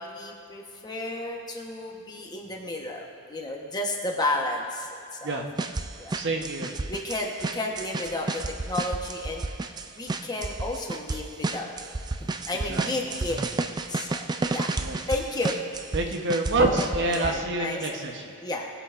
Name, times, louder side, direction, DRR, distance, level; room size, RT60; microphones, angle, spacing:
voice 1, 0.0-5.3 6.0-6.2 6.8-9.4 10.0-11.9 12.5-13.4 13.9-14.2 14.5-14.7 15.1-15.6 16.6-16.8 17.1-18.0 18.4-18.6, left 2 dB, 20° left, 0 dB, 1.1 m, -32 dB
sound 1, 5.6-17.3, right 3 dB, 20° right, 0.3 m, -31 dB
voice 2, 6.1-6.7 12.6-12.9 14.7-15.0 15.9-18.2, right 2 dB, 55° right, 3 dB, 1.0 m, -27 dB
19.0 x 8.0 x 2.5 m, 2.3 s
head